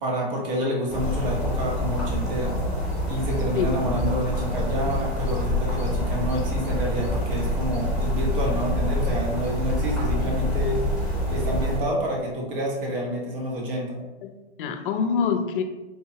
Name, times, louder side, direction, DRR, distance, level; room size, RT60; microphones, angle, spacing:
voice 1, 0.0-2.5 3.1-10.8 11.3-14.0, equal, 50° right, -1 dB, 1.2 m, -28 dB
sound 1, 0.9-11.8, left 1 dB, ahead, 0.9 m, -26 dB
voice 2, 14.2-15.6, left 6 dB, 50° left, 7 dB, 0.5 m, -26 dB
3.6 x 2.7 x 2.8 m, 1.1 s
hypercardioid pair, 135°, 34 cm